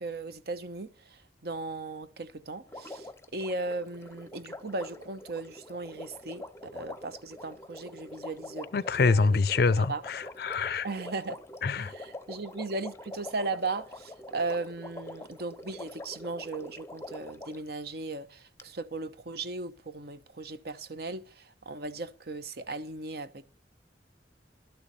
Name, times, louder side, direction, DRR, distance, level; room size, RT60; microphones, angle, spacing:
voice 1, 0.0-6.4 6.7-8.7 9.0-9.4 9.7-10.0 10.8-11.4 11.8-23.4, right 3 dB, 60° right, 0.9 m, -37 dB
Water, 2.7-17.7 18.6-18.7, left 1 dB, 15° left, 0.6 m, -45 dB
voice 2, 8.7-10.9 11.6-11.9, left 4 dB, 60° left, 0.5 m, -25 dB
12.0 x 7.0 x 6.8 m
head